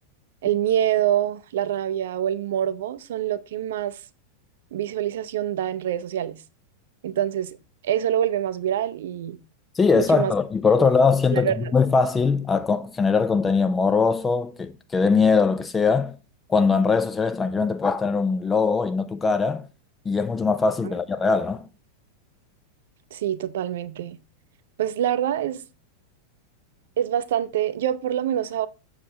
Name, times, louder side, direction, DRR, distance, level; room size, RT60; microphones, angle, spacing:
voice 1, 0.4-4.0 4.7-6.4 7.0-7.6 7.8-9.4 9.9-10.3 10.8-10.9 11.3-11.7 20.8-20.9 23.1-24.2 24.8-25.6 27.0-28.7, right 11 dB, 55° right, 0.6 m, -25 dB
voice 2, 9.7-16.1 16.5-19.7 20.1-21.7, left 5 dB, 15° left, 0.4 m, -21 dB
7.3 x 7.3 x 2.8 m
figure-of-eight pair, 90°, 0 cm